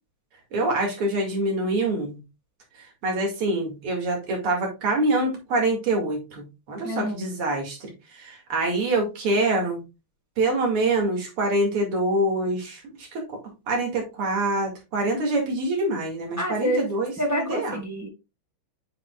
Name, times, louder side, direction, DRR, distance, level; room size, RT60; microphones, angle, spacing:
voice 1, 0.5-2.2 3.0-9.8 10.4-13.2 13.7-17.8, right 2 dB, 85° right, 1 dB, 3.1 m, -25 dB
voice 2, 6.8-7.2 16.4-16.9 17.2-18.1, equal, 10° right, 1 dB, 1.3 m, -27 dB
8.6 x 5.4 x 2.3 m, 0.26 s
omnidirectional pair, 2.4 m